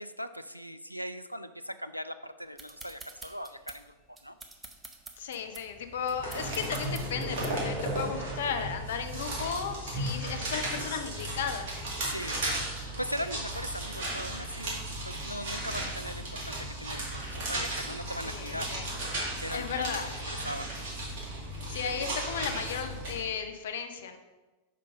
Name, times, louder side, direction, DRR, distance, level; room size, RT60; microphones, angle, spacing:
voice 1, 0.0-3.9 4.2-4.4 12.0-12.4 12.8-14.8 15.0-18.7 19.4-20.7, equal, 90° left, 10 dB, 0.3 m, -39 dB
sound 1, 2.6-7.8, right 3 dB, 15° right, 0.8 m, -48 dB
voice 2, 5.2-11.7 18.2-18.8 19.5-20.1 21.7-24.2, left 6 dB, 60° left, 7 dB, 0.6 m, -35 dB
sound 2, 5.9-23.2, right 1 dB, 55° right, 2.1 m, -35 dB
5.2 x 5.1 x 5.4 m, 1.2 s
figure-of-eight pair, 90°, 0 cm